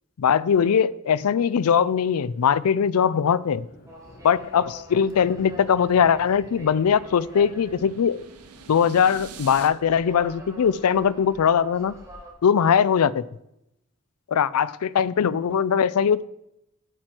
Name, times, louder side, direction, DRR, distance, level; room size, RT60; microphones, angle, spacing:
voice 1, 0.2-3.7 4.2-8.2 8.7-11.9 12.4-13.2 14.3-16.3, left 7 dB, 80° left, 19 dB, 0.4 m, -21 dB
sound 1, 1.4-2.3 2.6-9.3, equal, 45° left, 1.4 m, -51 dB
sound 2, 3.9-12.3, equal, 15° right, 2.0 m, -45 dB
sound 3, 6.3-9.7, right 6 dB, 85° right, 1.0 m, -47 dB
9.2 x 7.7 x 4.4 m, 0.84 s
head